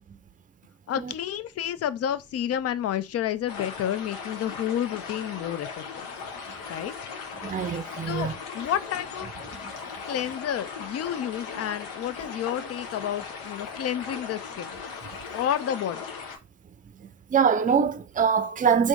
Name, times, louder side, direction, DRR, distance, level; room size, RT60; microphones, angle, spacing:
voice 1, 0.9-6.1 6.7-6.9 8.1-9.3 10.1-14.7 15.3-16.0, left 10 dB, 50° left, 0.5 m, -30 dB
sound 1, 3.5-16.4, left 5 dB, 85° left, 0.8 m, -38 dB
voice 2, 7.4-8.3 17.0-18.9, right 6 dB, 25° right, 0.5 m, -24 dB
3.6 x 2.6 x 3.5 m
supercardioid pair, 55°, 33 cm